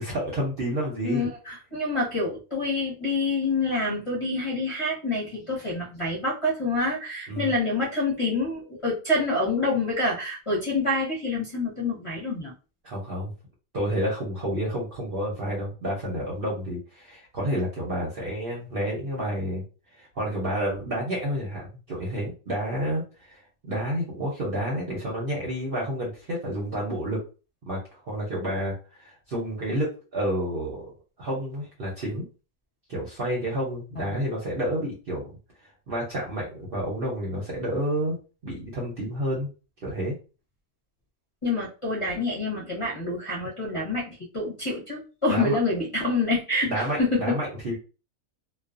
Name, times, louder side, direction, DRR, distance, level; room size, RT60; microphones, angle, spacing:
voice 1, 0.0-1.2 7.3-7.5 12.8-13.3 13.7-19.6 20.0-23.4 23.7-27.2 27.7-30.9 31.2-32.3 32.9-35.3 35.9-38.2 38.4-39.5 39.8-40.1 45.3-45.6 46.6-47.8, equal, 50° right, -3 dB, 0.8 m, -30 dB
voice 2, 1.0-12.5 34.0-34.2 41.4-47.4, left 2 dB, 25° left, -7 dB, 0.7 m, -27 dB
2.4 x 2.2 x 2.4 m, 0.33 s
omnidirectional pair, 1.5 m